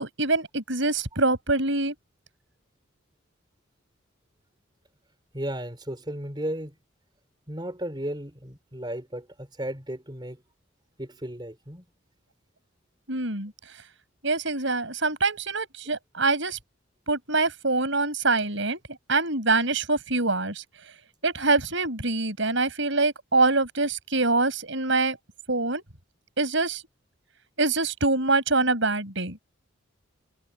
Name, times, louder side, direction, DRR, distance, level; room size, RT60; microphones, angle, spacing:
voice 1, 0.0-1.9 13.1-13.5 14.2-16.6 17.1-18.8 19.1-20.6 21.2-25.2 25.5-25.8 26.4-26.8 27.6-29.4, right 3 dB, 65° right, 5.8 m, -24 dB
voice 2, 5.3-6.8 7.5-10.4 11.0-11.8, right 1 dB, 20° right, 4.8 m, -34 dB
head